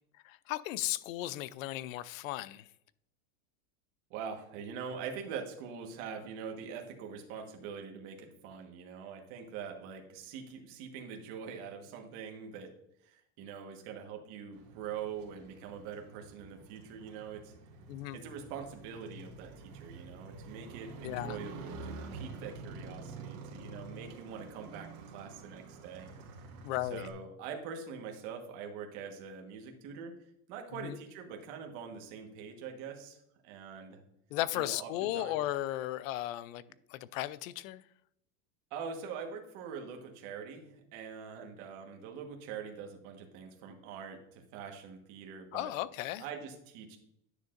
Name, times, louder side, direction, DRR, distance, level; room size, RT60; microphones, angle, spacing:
voice 1, 0.2-2.7 17.9-18.2 21.0-21.4 26.6-27.1 30.7-31.0 34.3-36.6 36.9-37.8 45.5-46.2, left 15 dB, 70° left, 0.5 m, -35 dB
voice 2, 4.1-12.7 13.0-17.5 18.1-26.1 26.9-30.1 30.5-34.0 34.5-35.4 38.7-45.7 46.2-47.0, right 6 dB, 45° right, 1.4 m, -44 dB
Motorcycle, 14.5-27.1, right 3 dB, 75° right, 1.9 m, -48 dB
10.0 x 6.5 x 2.5 m
supercardioid pair, 165°, 42 cm